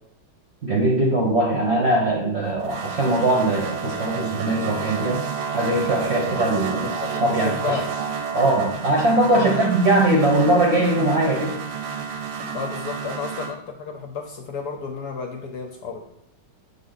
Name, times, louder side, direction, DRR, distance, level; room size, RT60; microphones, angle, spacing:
voice 1, 0.6-5.2 5.5-7.8 8.3-11.6, right 1 dB, 45° right, -2 dB, 0.9 m, -21 dB
sound 1, 2.4-13.5, right 6 dB, 65° right, 1.1 m, -31 dB
voice 2, 6.7-7.8 9.3-9.7 12.5-16.0, left 5 dB, 65° left, 2 dB, 1.1 m, -32 dB
7.3 x 3.7 x 3.9 m, 0.82 s
omnidirectional pair, 2.2 m